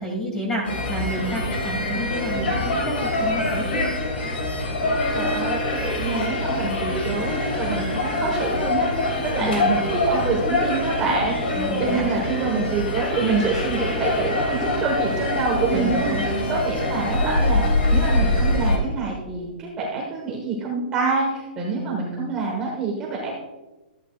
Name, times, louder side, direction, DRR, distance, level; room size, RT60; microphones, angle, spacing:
voice 1, 0.0-3.9 9.4-9.6 11.5-12.4 15.7-16.5, equal, 10° left, 0 dB, 2.0 m, -29 dB
sound 1, 0.6-18.8, left 2 dB, 80° left, 3.5 m, -24 dB
voice 2, 5.1-17.6 17.9-23.3, right 4 dB, 15° right, -3 dB, 1.3 m, -26 dB
13.5 x 8.9 x 2.4 m, 1.1 s
hypercardioid pair, 175°, 6 cm